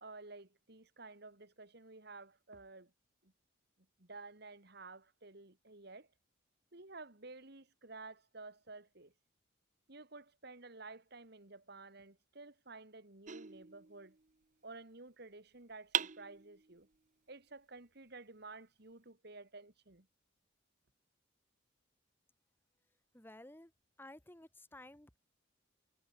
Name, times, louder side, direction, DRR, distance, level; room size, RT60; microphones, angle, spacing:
voice 1, 0.0-2.9 3.2-3.3 4.0-6.1 6.7-9.1 9.9-14.2 14.6-16.9 17.3-20.1, right 3 dB, 55° right, 2.4 m, -53 dB
sound 1, 13.3-14.4 15.9-16.9, right 8 dB, 40° right, 0.8 m, -40 dB
voice 2, 23.1-23.7 24.0-25.2, left 1 dB, 10° left, 1.4 m, -54 dB
head